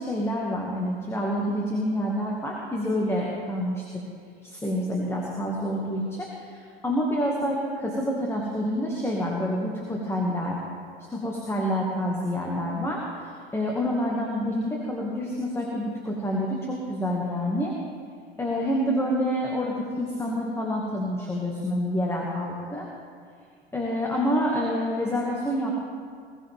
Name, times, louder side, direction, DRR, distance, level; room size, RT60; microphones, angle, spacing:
voice 1, 0.0-3.9 4.4-10.6 11.1-17.7 18.4-22.9 23.7-25.8, equal, 10° left, -2 dB, 2.2 m, -28 dB
21.5 x 14.5 x 3.7 m, 2.1 s
figure-of-eight pair, 80°, 31 cm